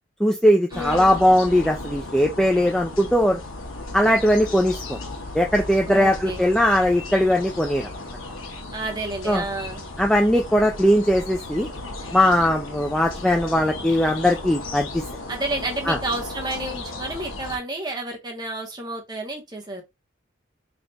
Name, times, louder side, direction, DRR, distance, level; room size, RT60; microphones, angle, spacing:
voice 1, 0.2-3.4 3.9-5.0 5.3-7.9 9.3-9.4 10.0-11.7 12.1-15.0 15.9-16.0, equal, 5° left, 0.3 m, -19 dB
sound 1, 0.7-17.6, left 2 dB, 90° left, 1.1 m, -35 dB
voice 2, 0.7-1.2 5.9-6.4 8.7-9.8 15.3-19.8, right 2 dB, 20° right, 1.0 m, -30 dB
3.4 x 2.4 x 3.9 m
head